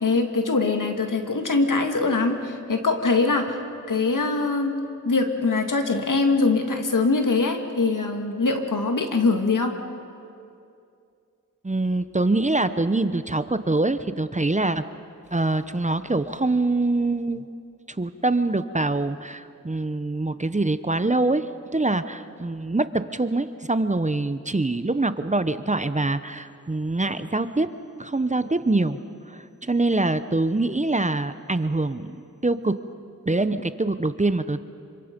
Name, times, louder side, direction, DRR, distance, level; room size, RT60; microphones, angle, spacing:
voice 1, 0.0-3.6 3.9-4.7 5.0-9.7, left 3 dB, 75° left, 4 dB, 2.1 m, -23 dB
voice 2, 11.6-14.8 15.3-17.5 17.9-27.7 28.0-29.0 29.3-32.8 33.3-34.6, right 2 dB, 20° right, 11 dB, 0.8 m, -24 dB
26.5 x 25.5 x 5.3 m, 2.5 s
wide cardioid pair, 55°, 32 cm